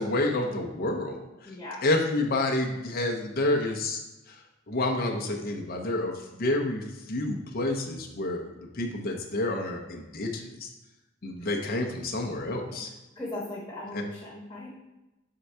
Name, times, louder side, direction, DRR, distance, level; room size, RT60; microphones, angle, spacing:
voice 1, 0.0-1.3 1.8-4.0 4.7-10.7 11.2-12.9 13.9-14.0, left 2 dB, 50° left, 1 dB, 0.7 m, -29 dB
voice 2, 1.4-1.9 11.4-11.5 12.7-12.8 13.1-14.7, left 1 dB, 15° left, -6 dB, 1.3 m, -38 dB
4.5 x 3.8 x 5.5 m, 1.0 s
head